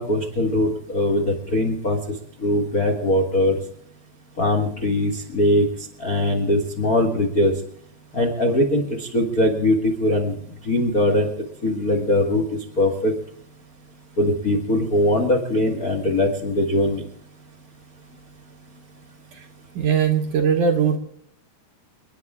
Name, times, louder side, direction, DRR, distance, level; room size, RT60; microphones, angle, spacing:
voice 1, 0.0-2.0 2.4-3.6 4.4-5.7 6.0-7.5 8.1-10.4 10.6-11.3 11.6-12.4 12.8-13.1 14.2-17.0, left 1 dB, 65° left, 2 dB, 0.9 m, -21 dB
voice 2, 19.8-21.0, right 7 dB, 70° right, 2 dB, 2.1 m, -20 dB
29.5 x 9.9 x 3.6 m, 0.67 s
omnidirectional pair, 4.7 m